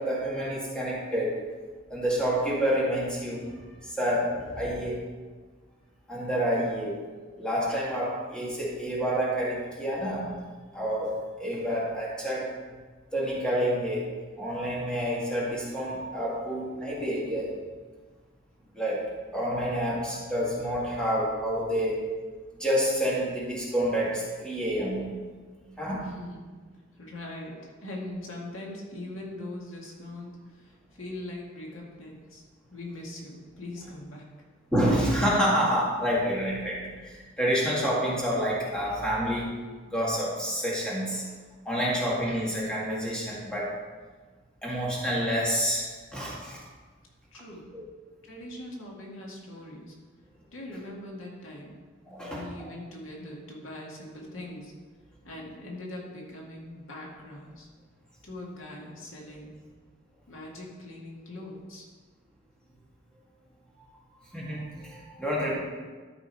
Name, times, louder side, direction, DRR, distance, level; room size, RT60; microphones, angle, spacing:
voice 1, 0.0-1.5 1.9-3.5 3.8-5.0 6.1-7.0 7.4-10.3 10.7-12.5 13.1-14.1 14.4-17.5 18.7-19.0 19.3-22.0 22.6-25.1 25.8-26.1 34.7-39.5 39.9-41.2 41.7-43.8 44.6-46.6 52.1-52.4 64.3-65.5, equal, 5° left, -6 dB, 2.1 m, -28 dB
voice 2, 26.0-26.5 27.0-32.4 32.7-34.3 47.3-47.7 48.2-50.0 50.5-54.7 55.2-57.7 58.2-59.5 60.3-61.9, left 1 dB, 80° left, -2 dB, 2.1 m, -41 dB
13.0 x 5.2 x 4.7 m, 1.4 s
head